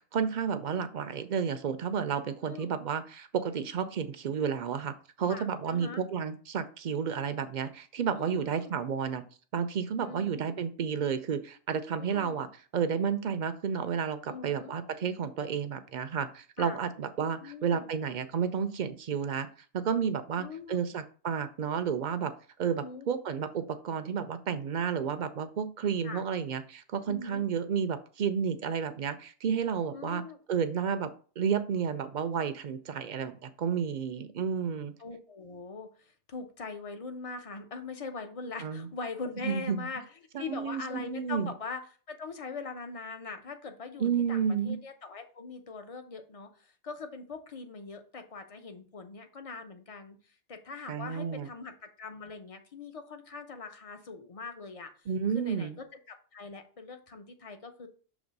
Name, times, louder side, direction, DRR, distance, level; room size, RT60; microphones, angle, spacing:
voice 1, 0.0-9.2 9.5-12.5 12.7-19.5 19.7-22.3 22.6-30.2 30.5-31.1 31.4-34.9 38.6-38.9 39.4-39.8 40.3-41.5 44.0-44.8 50.9-51.5 55.1-55.8, right 7 dB, 55° right, 10 dB, 0.6 m, -31 dB
voice 2, 2.5-2.8 5.3-6.0 8.1-8.7 10.0-10.4 12.0-12.4 14.3-14.7 16.6-16.8 17.4-17.9 20.4-20.9 22.8-23.1 26.0-26.2 27.1-27.5 29.9-30.4 35.0-40.0 40.4-41.8 42.1-50.2 50.5-51.7 52.0-54.9 55.3-57.9, left 4 dB, 35° left, 7 dB, 0.7 m, -42 dB
6.2 x 3.1 x 5.2 m, 0.40 s
omnidirectional pair, 1.2 m